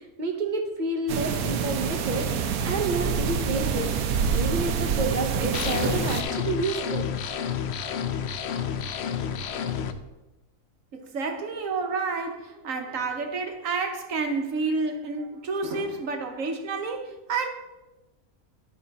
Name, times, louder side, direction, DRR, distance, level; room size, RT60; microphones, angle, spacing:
voice 1, 0.2-2.3 2.6-3.9 4.3-7.1, right 2 dB, 35° right, 4 dB, 1.0 m, -29 dB
sound 1, 1.1-6.2, right 6 dB, 80° right, 1.2 m, -27 dB
sound 2, 5.5-9.9, left 8 dB, 60° left, 0.7 m, -30 dB
voice 2, 10.9-17.5, right 4 dB, 65° right, 5 dB, 1.4 m, -30 dB
11.0 x 5.7 x 4.0 m, 1.0 s
omnidirectional pair, 1.5 m